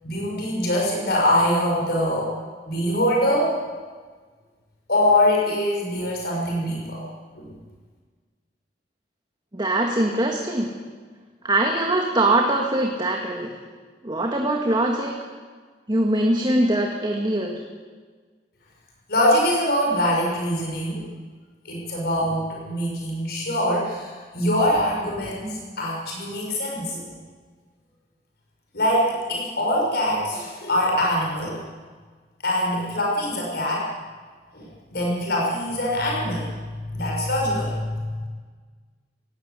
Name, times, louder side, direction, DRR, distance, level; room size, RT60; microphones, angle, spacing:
voice 1, 0.0-2.3 2.7-3.6 4.9-7.0 7.3-7.5 19.1-21.0 21.6-27.0 28.7-31.6 32.4-33.9 34.5-36.4 36.9-37.8, left 1 dB, 60° left, -2 dB, 6.1 m, -23 dB
voice 2, 9.5-10.7 11.4-13.5 14.0-15.2 15.9-17.6, right 1 dB, 25° right, 2 dB, 1.8 m, -22 dB
19.0 x 18.0 x 8.3 m, 1.5 s
head